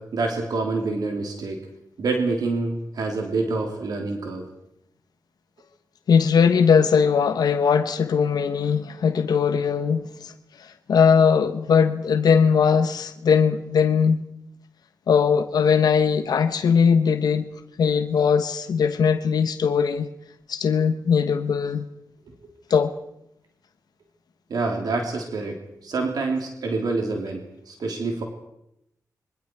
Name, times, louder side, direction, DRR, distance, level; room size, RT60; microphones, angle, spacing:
voice 1, 0.0-1.6 2.0-4.4 22.3-22.4 24.5-28.2, right 3 dB, 85° right, 3.4 m, -27 dB
voice 2, 6.1-10.3 10.6-14.2 15.1-17.5 17.8-20.1 20.5-21.8 22.7-22.9, left 6 dB, 85° left, 1.1 m, -20 dB
27.0 x 23.5 x 4.7 m
cardioid pair, 70°, 7 cm